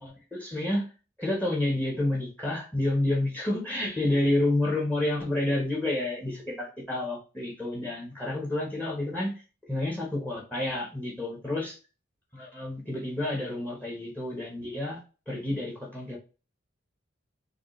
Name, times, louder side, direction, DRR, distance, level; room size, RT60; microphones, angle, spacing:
voice 1, 0.0-0.8 1.2-9.3 9.7-11.8 12.3-15.0 15.3-16.2, left 1 dB, 10° left, -1 dB, 1.0 m, -29 dB
4.9 x 2.4 x 3.1 m, 0.34 s
head